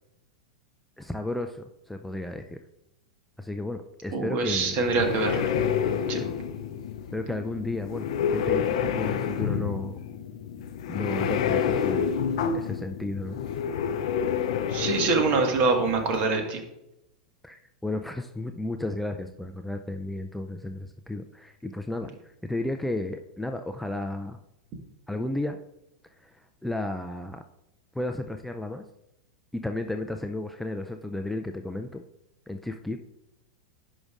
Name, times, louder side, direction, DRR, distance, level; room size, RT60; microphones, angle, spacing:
voice 1, 1.0-2.6 3.4-4.8 6.2-6.3 7.1-10.0 10.9-12.1 12.5-13.4 17.4-24.4 25.1-25.6 26.2-27.4 27.9-28.8 29.5-32.0 32.5-33.0, left 2 dB, 5° left, 5 dB, 0.4 m, -33 dB
voice 2, 4.1-5.5 6.1-6.2 14.7-16.6, right 4 dB, 45° right, 4 dB, 1.5 m, -25 dB
sound 1, 4.5-16.3, left 7 dB, 60° left, 0.5 m, -29 dB
11.0 x 5.3 x 2.5 m, 0.86 s
hypercardioid pair, 95°, 4 cm